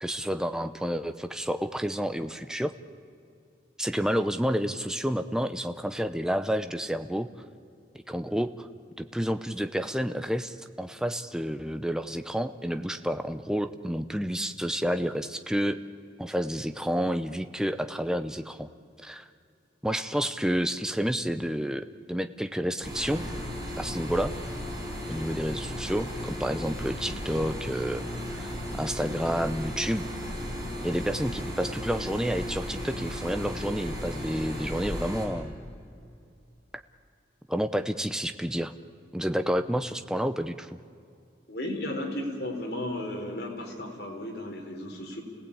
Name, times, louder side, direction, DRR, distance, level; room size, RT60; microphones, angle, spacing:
voice 1, 0.0-2.7 3.8-7.3 8.1-8.7 9.0-15.8 16.2-18.7 19.0-19.3 19.8-23.2 23.8-24.3 25.1-28.0 28.3-30.1 30.8-35.6 37.5-38.7 39.1-40.8, equal, 5° right, 9 dB, 0.7 m, -30 dB
sound 1, 22.8-35.3, equal, 20° right, 5.3 m, -35 dB
voice 2, 41.5-45.2, left 1 dB, 55° left, 1 dB, 4.1 m, -34 dB
29.0 x 18.0 x 8.7 m, 2.5 s
head